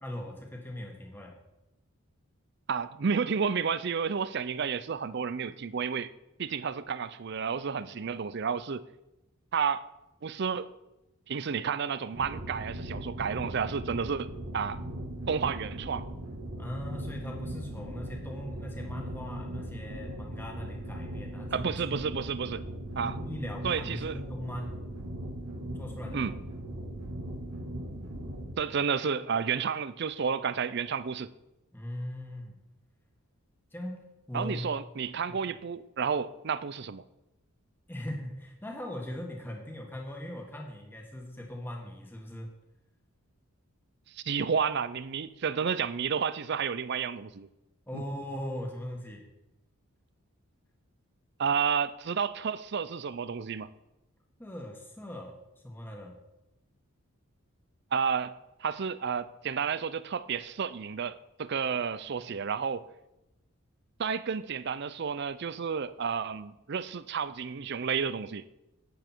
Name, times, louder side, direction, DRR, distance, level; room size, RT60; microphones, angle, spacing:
voice 1, 0.0-1.4 16.6-22.0 23.0-24.8 25.7-26.2 31.7-32.6 33.7-34.6 35.3-35.4 37.9-42.5 47.9-49.2 54.4-55.4 55.6-56.2, left 1 dB, 10° left, 1 dB, 1.7 m, -40 dB
voice 2, 2.7-6.1 6.4-8.8 9.5-9.9 10.2-10.7 11.3-14.8 15.3-16.1 21.5-22.6 23.0-23.2 23.6-24.2 26.1-26.3 28.6-31.3 34.3-37.0 44.1-47.5 47.9-48.0 51.4-53.7 57.9-58.3 58.6-62.8 64.0-68.5, right 6 dB, 50° right, 16 dB, 0.4 m, -31 dB
sound 1, 12.1-28.5, right 1 dB, 85° right, 2.0 m, -39 dB
11.5 x 9.1 x 4.5 m, 0.94 s
head